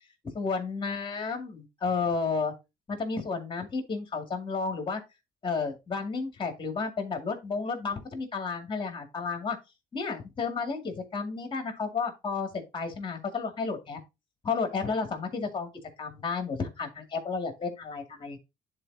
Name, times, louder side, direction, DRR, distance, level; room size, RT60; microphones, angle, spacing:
voice 1, 0.3-2.5 2.9-5.0 5.4-9.6 9.9-14.0 14.4-15.7 16.0-18.4, left 4 dB, 30° left, 2.1 m, -32 dB
10.5 x 4.1 x 2.7 m
cardioid pair, 110°, 17 cm